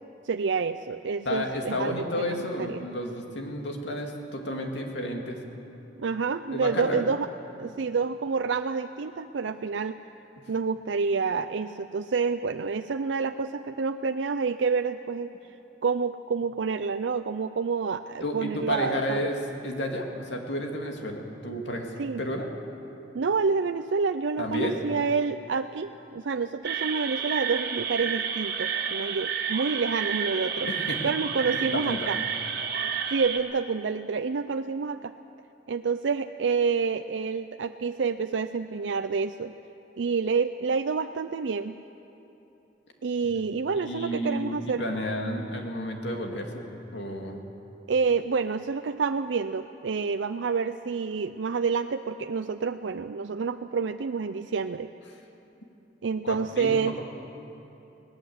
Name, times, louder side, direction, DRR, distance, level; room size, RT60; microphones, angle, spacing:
voice 1, 0.2-2.9 6.0-7.3 7.6-10.0 10.5-15.3 15.8-19.3 22.0-22.2 23.1-30.7 31.0-32.2 33.1-35.1 35.7-39.5 40.0-41.7 43.0-44.8 47.9-54.9 56.0-57.0, right 5 dB, 90° right, 8 dB, 0.5 m, -28 dB
voice 2, 1.3-5.4 6.5-7.1 18.2-22.5 24.4-25.0 30.6-31.0 31.4-32.1 43.7-47.4 56.2-57.0, left 1 dB, 70° left, 2 dB, 2.4 m, -32 dB
sound 1, 26.6-33.4, right 7 dB, 60° right, 1.8 m, -30 dB
21.0 x 18.5 x 7.9 m, 3.0 s
head